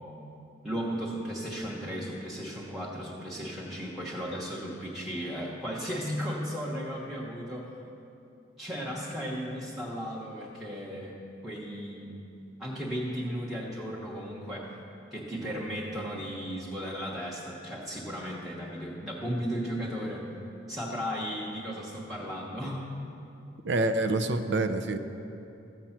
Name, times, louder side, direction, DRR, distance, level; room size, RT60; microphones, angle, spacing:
voice 1, 0.6-7.7 8.6-11.2 11.4-12.1 12.6-14.7 15.1-20.3 20.7-22.8, equal, ahead, -5 dB, 1.1 m, -35 dB
voice 2, 23.6-25.0, right 2 dB, 60° right, 8 dB, 0.6 m, -27 dB
14.0 x 7.6 x 5.8 m, 2.8 s
head